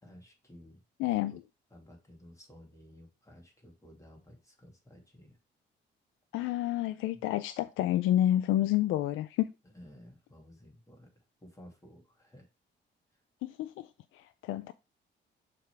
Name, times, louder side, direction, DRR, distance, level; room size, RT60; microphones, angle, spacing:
voice 1, 0.0-0.8 1.7-5.4 7.1-7.2 9.7-11.1 11.4-12.5, left 1 dB, 15° left, 2.3 m, -54 dB
voice 2, 1.0-1.4 6.3-9.5 13.4-13.9 14.1-14.7, left 13 dB, 90° left, 0.4 m, -29 dB
6.6 x 3.7 x 4.5 m
cardioid pair, 90°, 20 cm